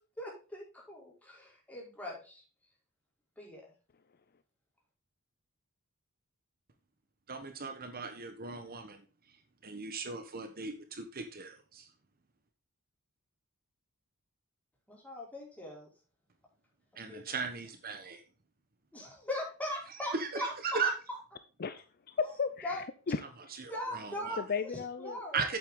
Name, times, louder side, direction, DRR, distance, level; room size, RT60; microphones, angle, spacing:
voice 1, 0.2-2.4 3.4-3.7 14.9-15.9 16.9-17.3 18.9-20.9 22.6-22.8 23.7-24.7 25.0-25.5, left 1 dB, 5° left, -3 dB, 5.0 m, -40 dB
voice 2, 7.3-9.4 9.6-11.9 17.0-18.2 19.9-20.9 23.5-24.4 25.3-25.6, right 5 dB, 40° right, 6 dB, 1.2 m, -37 dB
voice 3, 21.6-23.2 24.4-25.2, left 5 dB, 45° left, 12 dB, 0.6 m, -35 dB
8.6 x 8.4 x 3.8 m, 0.35 s
head